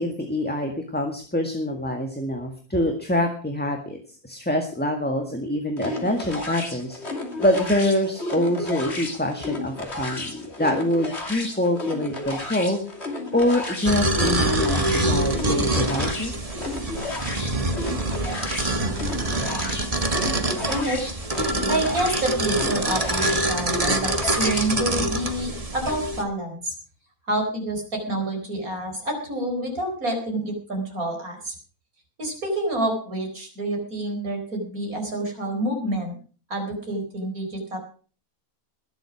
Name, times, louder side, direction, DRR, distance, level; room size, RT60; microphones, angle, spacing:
voice 1, 0.0-7.0 7.4-12.8 13.3-16.4, left 1 dB, 5° left, 3 dB, 1.7 m, -25 dB
sound 1, 5.8-24.8, left 2 dB, 45° left, 3.1 m, -33 dB
sound 2, 13.9-26.2, right 2 dB, 25° right, 1.5 m, -25 dB
voice 2, 18.8-21.0 21.7-26.7 27.3-31.5 32.2-36.1 36.5-37.8, right 1 dB, 75° right, 2 dB, 4.9 m, -28 dB
20.5 x 7.9 x 6.1 m, 0.40 s
omnidirectional pair, 1.5 m